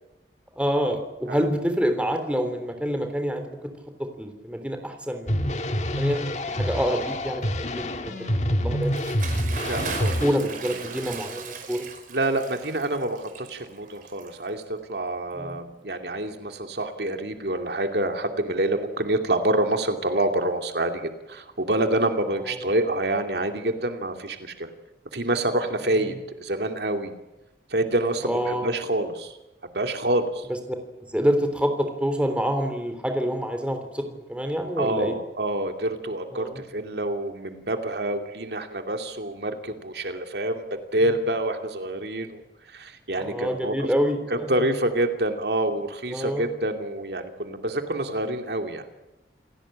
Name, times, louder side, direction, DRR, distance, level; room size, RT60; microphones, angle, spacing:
voice 1, 0.6-3.6 4.0-5.4 6.0-6.2 6.5-7.4 7.7-8.3 8.6-9.0 9.8-11.9 15.3-15.6 22.4-22.7 28.2-28.7 31.1-35.1 36.3-36.6 43.2-44.5 46.1-46.5, equal, 5° right, 6 dB, 3.4 m, -27 dB
sound 1, 5.3-10.3, equal, 40° left, 1.8 m, -27 dB
Bathtub (filling or washing) / Splash splatter, 8.8-14.8, right 4 dB, 50° right, 4.9 m, -37 dB
voice 2, 9.5-10.2 10.8-10.9 12.1-24.7 25.1-27.1 27.7-29.4 29.7-30.5 34.8-40.6 40.9-42.4 42.7-43.7 44.3-48.9, right 1 dB, 65° right, 5 dB, 2.6 m, -27 dB
29.0 x 17.5 x 8.8 m, 0.99 s
head